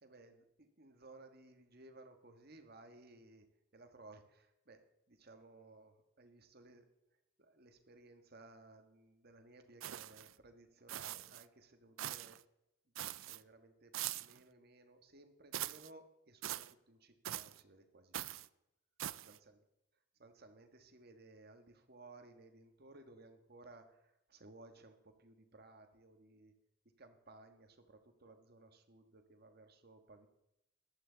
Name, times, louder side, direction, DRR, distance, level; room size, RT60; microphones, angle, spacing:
voice 1, 0.0-3.5 3.7-4.8 5.1-6.9 7.4-12.4 13.2-18.4 19.3-19.6 20.2-26.5 27.0-30.3, right 2 dB, 50° right, 6 dB, 1.5 m, -59 dB
sound 1, 9.8-10.3 10.9-11.4 12.0-12.4 13.0-13.4 13.9-14.4 15.5-15.9 16.4-16.7 17.3-17.6 18.1-18.5 19.0-19.4, right 13 dB, 80° right, 0.4 m, -43 dB
14.0 x 11.5 x 4.0 m, 0.87 s
head